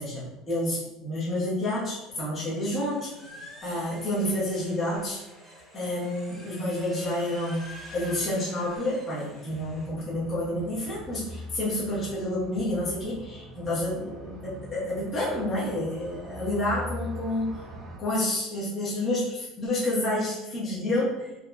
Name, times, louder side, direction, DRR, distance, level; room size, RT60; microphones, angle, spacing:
voice 1, 0.0-3.1 3.6-5.2 5.7-17.6 18.0-21.3, left 1 dB, 20° left, -8 dB, 1.0 m, -29 dB
sound 1, 2.5-9.9, equal, 5° right, 0.9 m, -47 dB
sound 2, 9.5-18.0, left 1 dB, 20° right, 0.5 m, -42 dB
3.7 x 2.8 x 2.3 m, 0.94 s
cardioid pair, 165°, 0 cm